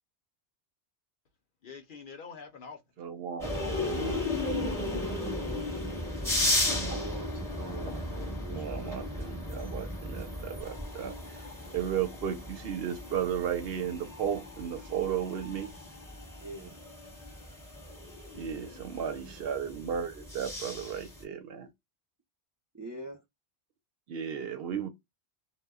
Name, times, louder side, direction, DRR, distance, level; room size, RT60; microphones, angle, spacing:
voice 1, 1.6-2.8 4.1-5.0, left 5 dB, 55° left, 0.7 m, -46 dB
voice 2, 3.0-4.2 6.8-7.0 7.8-8.0 8.5-15.7 18.3-21.7 24.1-24.9, right 8 dB, 65° right, 0.8 m, -35 dB
sound 1, 3.4-21.2, left 1 dB, 5° left, 0.9 m, -35 dB
voice 3, 6.1-8.9 16.4-16.8 22.7-23.2, right 2 dB, 30° right, 0.3 m, -44 dB
2.1 x 2.1 x 3.5 m
omnidirectional pair, 1.1 m